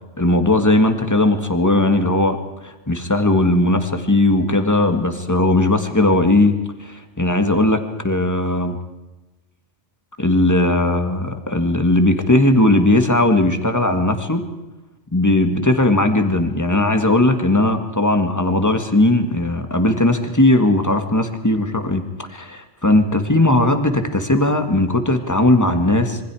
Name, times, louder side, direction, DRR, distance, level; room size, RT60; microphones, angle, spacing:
voice 1, 0.2-2.4 2.6-8.8 10.2-14.4 15.1-22.0 22.3-26.2, left 1 dB, 15° left, 6 dB, 1.9 m, -17 dB
26.5 x 24.0 x 4.9 m, 1.1 s
omnidirectional pair, 1.2 m